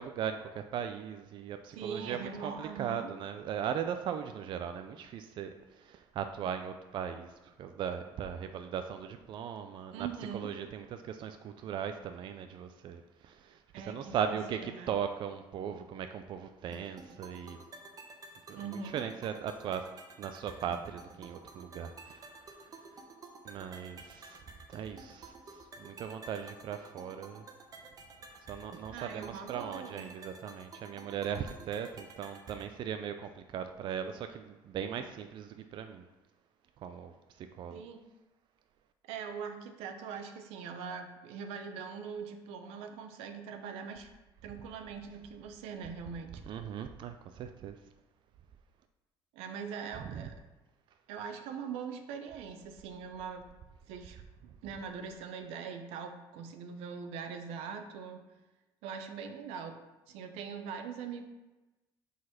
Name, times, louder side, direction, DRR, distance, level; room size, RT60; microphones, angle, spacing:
voice 1, 0.0-10.1 10.3-17.7 18.5-19.9 20.2-22.7 23.4-24.4 24.7-27.4 28.5-36.1 36.8-37.8 46.5-47.8 50.0-50.3, right 8 dB, 55° right, 7 dB, 0.4 m, -38 dB
voice 2, 1.7-3.1 9.9-10.5 13.7-14.9 18.5-19.0 28.9-30.0 37.7-38.0 39.1-44.1 44.4-46.4 49.3-50.4 51.1-53.5 53.9-54.2 54.6-58.2 58.8-59.8 60.1-61.2, right 6 dB, 90° right, 7 dB, 0.7 m, -42 dB
sound 1, 16.7-32.7, right 3 dB, 40° right, 0.9 m, -51 dB
5.1 x 4.1 x 5.8 m, 1.1 s
cardioid pair, 110°, 10 cm